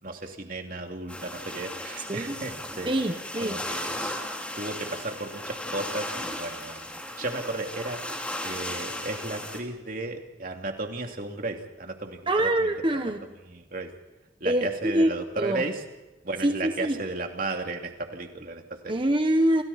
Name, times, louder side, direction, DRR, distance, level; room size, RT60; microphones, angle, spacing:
voice 1, 0.0-3.0 3.4-4.2 4.6-6.9 7.2-8.0 8.4-13.0 13.5-13.9 14.4-15.8 16.2-19.0, right 2 dB, 50° right, 3 dB, 2.8 m, -34 dB
sound 1, 1.1-9.6, left 1 dB, 5° left, 3.0 m, -36 dB
voice 2, 2.9-3.6 12.3-13.2 14.4-15.1 15.4-15.6 16.4-17.0 18.9-19.6, right 1 dB, 30° right, 6 dB, 1.3 m, -24 dB
29.0 x 28.5 x 4.3 m, 1.1 s
head